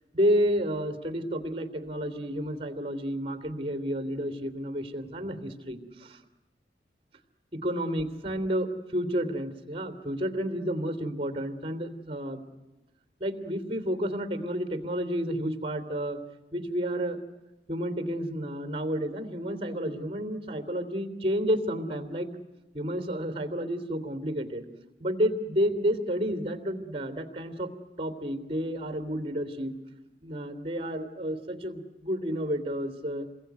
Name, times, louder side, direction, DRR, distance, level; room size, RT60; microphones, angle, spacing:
voice 1, 0.1-6.2 7.5-12.4 13.2-16.2 16.5-17.2 17.7-22.3 22.7-24.6 25.0-27.7 28.0-29.8 30.2-33.3, equal, 35° right, 10 dB, 3.0 m, -30 dB
29.0 x 22.0 x 9.4 m, 1.0 s
head